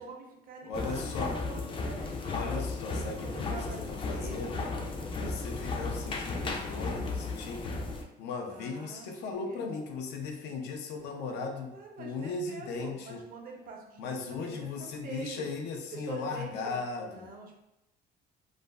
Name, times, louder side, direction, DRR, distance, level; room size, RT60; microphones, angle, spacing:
voice 1, 0.0-2.4 3.2-5.2 8.5-9.6 11.7-15.5 15.9-17.5, right 3 dB, 55° right, 1 dB, 0.6 m, -45 dB
voice 2, 0.6-1.3 2.3-3.6 4.1-4.6 5.2-7.8 8.2-13.2 14.0-17.2, left 4 dB, 85° left, 3 dB, 0.5 m, -37 dB
sound 1, 0.7-8.0, left 3 dB, 30° left, 0.4 m, -35 dB
2.4 x 2.0 x 3.1 m, 0.88 s
cardioid pair, 110°, 17 cm